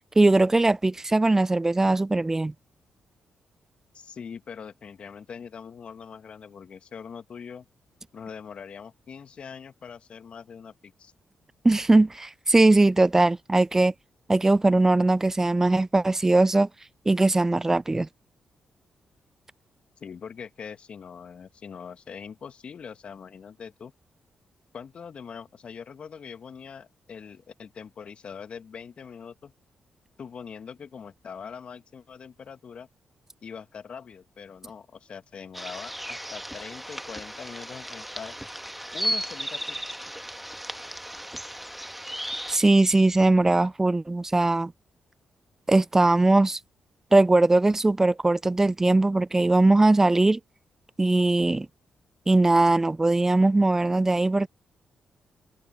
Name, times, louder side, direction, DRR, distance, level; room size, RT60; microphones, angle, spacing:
voice 1, 0.2-2.5 11.6-13.9 14.3-16.7 17.1-18.1 42.5-44.7 45.7-46.6 47.1-50.4 51.0-51.7 52.3-54.5, right 2 dB, 20° right, 0.3 m, -20 dB
voice 2, 3.9-7.7 8.1-11.1 20.0-23.9 24.7-29.5 30.2-32.9 33.4-38.4 38.9-40.0, left 6 dB, 60° left, 2.0 m, -42 dB
sound 1, 35.5-42.6, equal, 5° right, 1.5 m, -35 dB
hypercardioid pair, 45°, 2 cm